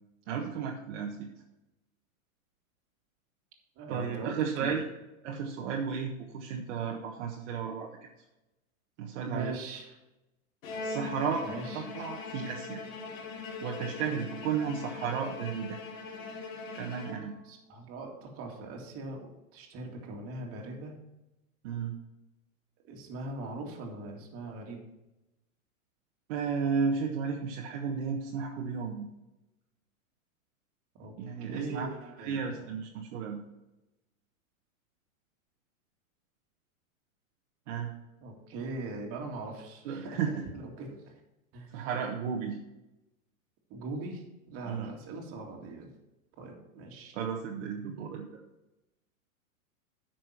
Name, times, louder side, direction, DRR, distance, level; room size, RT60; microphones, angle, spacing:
voice 1, 0.3-1.3 3.9-4.8 5.2-8.1 9.0-9.5 10.8-11.4 11.7-12.8 13.6-15.8 16.7-17.4 21.6-21.9 26.3-29.1 31.2-31.9 32.2-33.4 37.7-37.9 39.8-40.3 41.7-42.6 44.6-44.9 47.1-48.2, right 6 dB, 55° right, 0 dB, 1.4 m, -33 dB
voice 2, 3.8-4.8 9.2-10.0 11.4-11.8 17.4-21.0 22.8-24.8 30.9-31.1 31.5-32.7 38.2-40.2 40.5-41.1 41.5-41.9 43.7-45.9 46.4-47.2, right 2 dB, 35° right, 0 dB, 2.3 m, -41 dB
Bowed string instrument, 10.6-17.6, left 4 dB, 70° left, 2.0 m, -41 dB
9.4 x 6.1 x 5.8 m, 0.96 s
hypercardioid pair, 140°, 42 cm